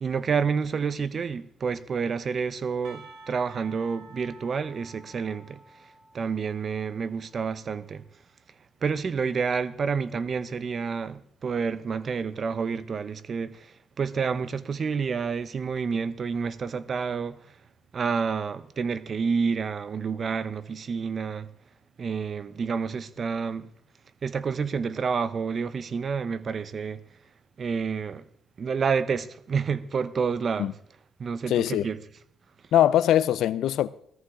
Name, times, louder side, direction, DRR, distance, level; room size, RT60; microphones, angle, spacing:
voice 1, 0.0-5.6 6.1-8.0 8.8-17.5 17.9-21.5 22.0-23.7 24.2-27.0 27.6-28.2 28.6-30.7 31.2-32.0, right 5 dB, 45° right, 0.8 m, -29 dB
Percussion / Church bell, 2.8-7.9, right 3 dB, 90° right, 2.1 m, -51 dB
voice 2, 31.5-31.9 32.7-33.9, left 12 dB, 80° left, 0.6 m, -22 dB
17.5 x 14.0 x 3.8 m
cardioid pair, 90°, 0 cm